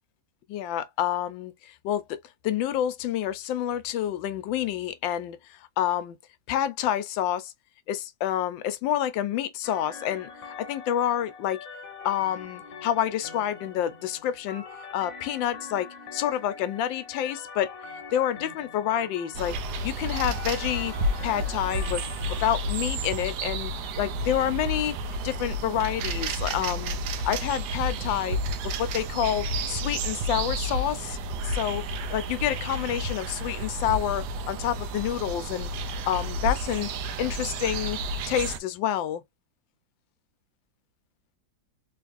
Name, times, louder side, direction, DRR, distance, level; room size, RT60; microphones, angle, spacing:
voice 1, 0.5-2.2 2.4-6.2 6.5-7.5 7.9-11.6 12.0-14.6 14.9-17.7 18.1-19.6 19.8-21.0 21.2-22.1 22.4-23.7 24.0-25.0 25.2-27.0 27.2-28.4 28.8-31.8 32.1-35.7 36.1-36.9 37.2-38.0 38.3-39.2, left 11 dB, 80° left, 1.3 m, -28 dB
sound 1, 9.6-22.6, left 5 dB, 55° left, 1.3 m, -43 dB
sound 2, 19.3-38.6, right 1 dB, 70° right, 1.0 m, -31 dB
3.5 x 3.2 x 2.4 m
omnidirectional pair, 2.1 m